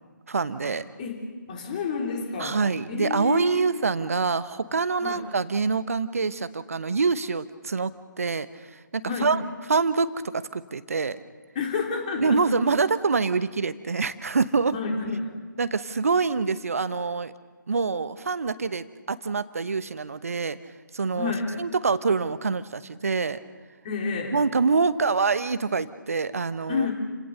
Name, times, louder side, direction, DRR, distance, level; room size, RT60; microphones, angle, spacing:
voice 1, 0.3-0.8 2.4-7.9 8.2-8.5 8.9-9.4 9.7-11.2 12.2-14.7 15.6-17.3 17.7-20.6 20.9-23.4 24.3-26.9, right 4 dB, 45° right, 14 dB, 1.0 m, -25 dB
voice 2, 1.5-2.6 2.9-3.7 5.0-5.2 9.0-9.3 11.6-12.5 14.7-15.3 21.1-21.5 23.8-24.3 26.7-26.9, left 5 dB, 25° left, 0 dB, 3.6 m, -29 dB
29.5 x 18.0 x 6.7 m, 1.4 s
figure-of-eight pair, 150°, 11 cm